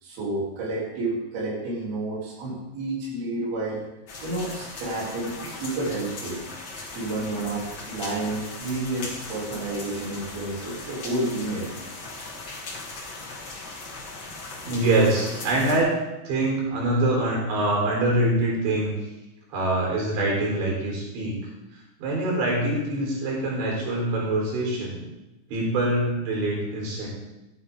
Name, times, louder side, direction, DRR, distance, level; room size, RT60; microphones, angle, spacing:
voice 1, 0.0-3.8 4.2-6.4 6.9-11.7, right 2 dB, 60° right, -6 dB, 4.9 m, -30 dB
sound 1, 4.1-15.8, left 3 dB, 45° left, 1.6 m, -38 dB
voice 2, 14.6-15.9 16.3-18.9 19.5-21.4 22.0-25.0 25.5-27.1, right 1 dB, 90° right, -3 dB, 6.3 m, -24 dB
14.5 x 10.5 x 3.6 m, 0.98 s
omnidirectional pair, 5.1 m